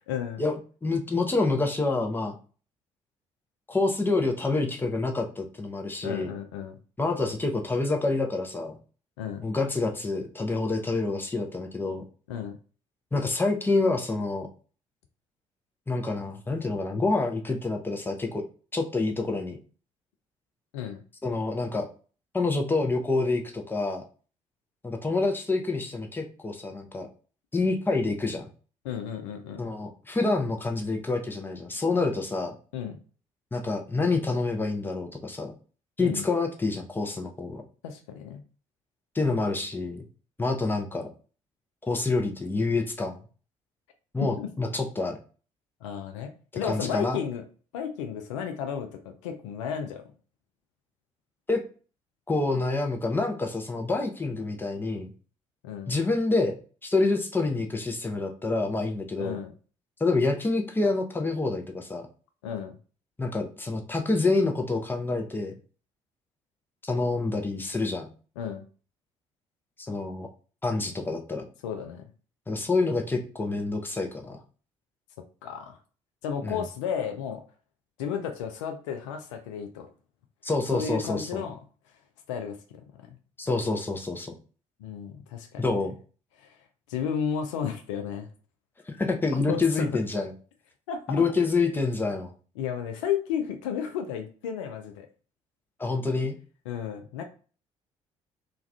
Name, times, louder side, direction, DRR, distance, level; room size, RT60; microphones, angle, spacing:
voice 1, 0.1-0.4 6.0-6.8 9.2-9.5 12.3-12.6 20.7-21.0 28.8-29.6 32.7-33.0 36.0-36.2 37.8-38.4 44.2-44.5 45.8-47.4 47.7-50.0 55.6-56.0 59.2-59.5 62.4-62.8 68.4-68.6 71.6-72.0 75.4-75.8 76.2-77.4 78.0-79.9 80.7-81.6 82.3-82.6 83.0-83.1 84.8-85.7 86.4-86.5 86.9-88.3 89.5-90.0 90.9-91.2 92.6-95.1 96.7-97.2, left 8 dB, 75° left, 6 dB, 0.4 m, -33 dB
voice 2, 0.8-2.3 3.7-6.3 7.0-8.8 9.4-12.0 13.1-14.5 15.9-18.4 18.7-19.6 21.2-21.9 22.3-24.0 24.8-27.1 27.5-28.5 29.6-32.5 33.5-35.5 36.0-37.6 39.1-40.0 40.4-41.1 41.9-43.2 44.1-45.2 46.6-47.2 51.5-51.6 52.3-55.1 55.9-59.4 60.0-62.1 63.2-65.5 66.8-68.1 69.8-70.3 70.6-71.4 72.5-74.4 76.4-76.7 80.4-81.4 83.4-84.3 85.6-85.9 88.9-90.3 91.1-92.3 95.8-96.4, left 3 dB, 15° left, 3 dB, 0.6 m, -27 dB
2.4 x 2.3 x 3.2 m, 0.38 s
figure-of-eight pair, 50°, 16 cm